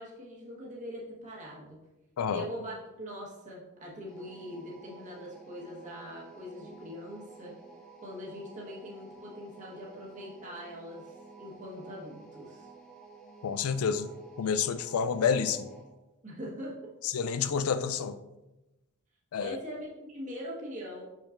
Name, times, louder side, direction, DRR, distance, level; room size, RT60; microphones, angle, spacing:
voice 1, 0.0-1.8 2.3-7.5 8.0-12.7 16.2-16.9 19.4-21.0, equal, 35° right, -4 dB, 1.3 m, -42 dB
sound 1, 4.1-15.9, right 4 dB, 5° left, 1.5 m, -52 dB
voice 2, 13.4-14.1 14.4-15.7 17.0-18.2 19.3-19.6, left 6 dB, 80° left, 12 dB, 0.4 m, -29 dB
6.3 x 6.1 x 2.5 m, 1.0 s
head